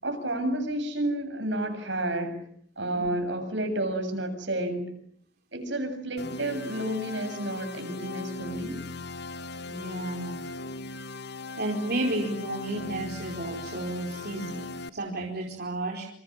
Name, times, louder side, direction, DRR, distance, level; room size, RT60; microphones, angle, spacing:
voice 1, 0.0-2.4 2.8-4.9 5.5-8.8, right 1 dB, 75° right, 7 dB, 7.5 m, -30 dB
sound 1, 6.2-14.9, left 3 dB, 60° left, 1.4 m, -38 dB
voice 2, 9.7-10.5 11.6-16.0, right 2 dB, 60° right, 1 dB, 4.6 m, -32 dB
28.5 x 27.5 x 7.5 m, 0.63 s
head